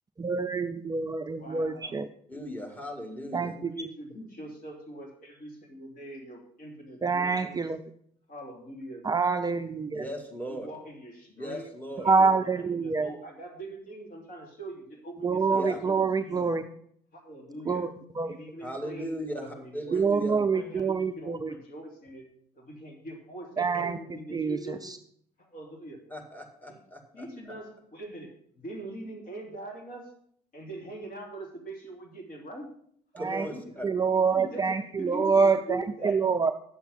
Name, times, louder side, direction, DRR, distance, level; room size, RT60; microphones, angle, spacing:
voice 1, 0.2-2.1 3.3-3.7 7.0-7.8 9.0-10.0 12.1-13.1 15.2-16.6 17.7-17.9 18.2-18.4 19.9-21.5 23.6-24.0 24.3-24.6 33.2-33.4 33.8-36.5, right 5 dB, 20° right, 8 dB, 0.5 m, -26 dB
voice 2, 1.3-2.1 3.5-7.7 8.3-9.1 10.5-11.6 12.0-15.9 16.2-16.6 17.1-17.8 18.3-22.3 22.5-24.9 25.4-26.0 26.7-26.8 27.1-30.1 30.5-32.7 33.2-33.6 34.3-36.2, right 1 dB, 45° left, 0 dB, 3.1 m, -42 dB
voice 3, 2.3-3.5 9.9-10.7 11.3-12.1 15.5-15.8 18.6-20.4 26.1-27.3 33.2-33.9, equal, 10° left, 2 dB, 2.1 m, -37 dB
9.8 x 7.1 x 5.6 m, 0.65 s
figure-of-eight pair, 55°, 20 cm